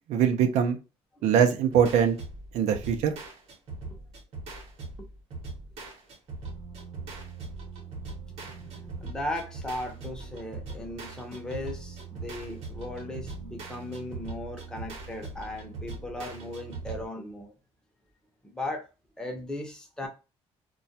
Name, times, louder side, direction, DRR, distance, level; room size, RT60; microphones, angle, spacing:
voice 1, 0.1-0.8 1.2-2.2 2.5-3.1, right 8 dB, 75° right, 0.5 m, -22 dB
sound 1, 1.7-17.1, right 3 dB, 60° right, 0.9 m, -41 dB
voice 2, 8.3-17.5 18.4-18.9 19.2-20.1, left 1 dB, 5° left, 0.6 m, -37 dB
2.2 x 2.1 x 2.6 m
cardioid pair, 140°, 12 cm